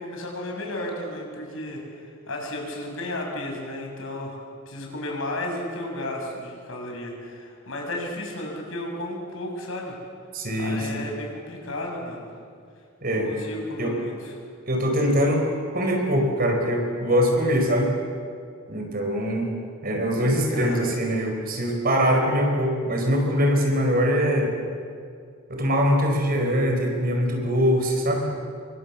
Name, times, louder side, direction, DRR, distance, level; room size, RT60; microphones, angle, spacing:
voice 1, 0.0-4.4 4.7-10.0 10.6-12.3 13.0-14.3 20.5-20.8, left 1 dB, 70° left, 0 dB, 7.0 m, -33 dB
voice 2, 10.3-11.0 13.0-13.3 13.8-14.0 14.7-15.5 15.7-17.9 18.7-19.5 19.8-24.5 25.5-28.3, equal, 45° right, 3 dB, 4.9 m, -23 dB
28.5 x 24.0 x 7.3 m, 2.3 s
head